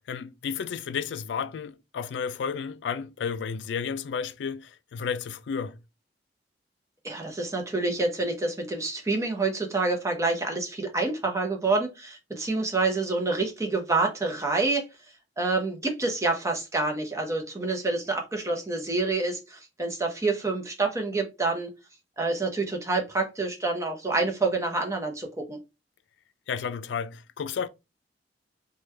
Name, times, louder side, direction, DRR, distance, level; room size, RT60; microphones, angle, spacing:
voice 1, 0.1-5.8 26.5-27.7, left 6 dB, 75° left, 0.3 m, -32 dB
voice 2, 7.0-14.8 15.4-21.7 22.2-25.6, right 3 dB, 15° right, 0.7 m, -27 dB
3.2 x 2.3 x 3.2 m
head